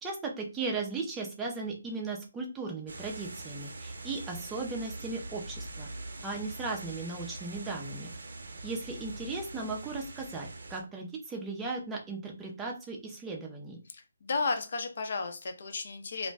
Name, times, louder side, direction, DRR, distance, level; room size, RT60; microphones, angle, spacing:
voice 1, 0.0-5.9 6.2-8.1 8.6-13.8, right 3 dB, 5° right, -1 dB, 0.4 m, -37 dB
sound 1, 2.9-10.8, right 2 dB, 70° right, 0.5 m, -43 dB
voice 2, 13.9-16.3, left 4 dB, 50° left, 6 dB, 0.6 m, -34 dB
2.5 x 2.1 x 3.3 m, 0.33 s
hypercardioid pair, 165°, 0 cm